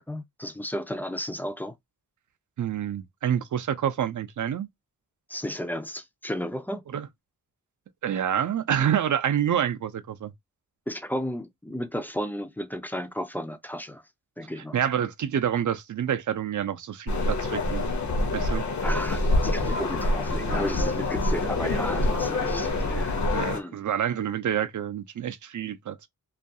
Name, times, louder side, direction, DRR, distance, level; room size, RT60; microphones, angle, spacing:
voice 1, 0.0-1.8 5.3-6.8 10.9-14.0 14.4-14.8 18.8-23.8, equal, 5° left, 0.3 m, -33 dB
voice 2, 2.6-4.7 6.9-7.1 8.0-10.3 14.7-17.9 18.3-18.6 23.3-26.1, right 9 dB, 60° right, 0.5 m, -27 dB
sound 1, 17.1-23.6, left 2 dB, 55° left, 0.7 m, -26 dB
2.4 x 2.3 x 2.6 m
wide cardioid pair, 110°, 35 cm